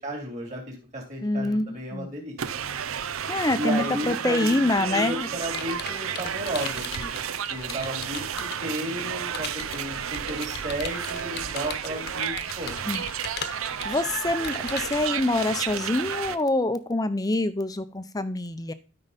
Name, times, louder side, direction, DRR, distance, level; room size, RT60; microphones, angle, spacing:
voice 1, 0.0-2.3 3.6-7.2 7.5-12.8, right 1 dB, 35° right, -1 dB, 3.2 m, -33 dB
voice 2, 1.2-2.1 3.3-5.3 12.9-13.0 13.5-18.7, left 2 dB, 20° left, 13 dB, 0.6 m, -26 dB
sound 1, 2.4-16.4, right 8 dB, 80° right, 0.6 m, -32 dB
Computer keyboard, 4.8-8.8 9.3-15.1, left 6 dB, 50° left, 1.0 m, -39 dB
12.5 x 5.5 x 4.1 m, 0.32 s
head